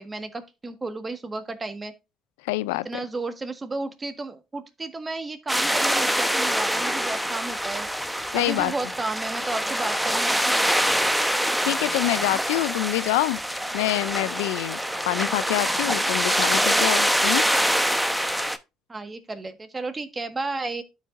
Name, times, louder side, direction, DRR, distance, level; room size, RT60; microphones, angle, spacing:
voice 1, 0.0-1.9 2.8-7.9 8.3-11.0 18.9-20.8, right 3 dB, 25° right, 1.5 m, -33 dB
voice 2, 2.4-3.0 8.3-8.7 11.7-13.4 13.7-14.8 15.1-17.4, left 18 dB, 80° left, 0.3 m, -26 dB
sound 1, 5.5-18.6, equal, ahead, 0.8 m, -25 dB
12.5 x 5.2 x 2.5 m
hypercardioid pair, 65°, 0 cm